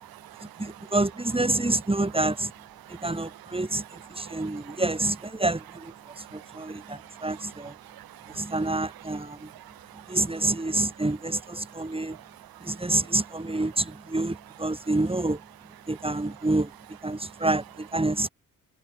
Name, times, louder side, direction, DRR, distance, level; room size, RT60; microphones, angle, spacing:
voice 1, 0.0-0.9 2.8-4.8 6.0-8.6 9.4-11.0 11.6-13.2 16.0-16.1 16.4-16.5 17.2-17.3, right 13 dB, 85° right, 6.8 m, -48 dB
voice 2, 0.6-2.5 2.9-3.8 4.1-7.7 8.3-9.5 10.1-12.2 12.6-15.4 15.9-16.7 17.0-18.3, right 2 dB, 15° right, 6.8 m, -28 dB
cardioid pair, 65°, 35 cm